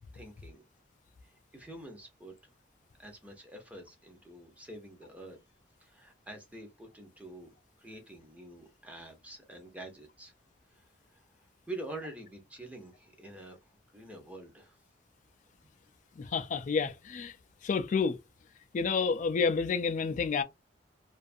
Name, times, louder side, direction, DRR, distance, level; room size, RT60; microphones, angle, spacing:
voice 1, 0.1-0.6 1.2-2.4 3.0-5.4 5.8-7.5 7.8-10.3 11.7-13.6 13.9-14.8, right 1 dB, 10° right, 0.7 m, -46 dB
voice 2, 16.2-17.4 17.6-18.2 18.7-20.4, left 5 dB, 45° left, 0.3 m, -29 dB
2.5 x 2.4 x 2.5 m
head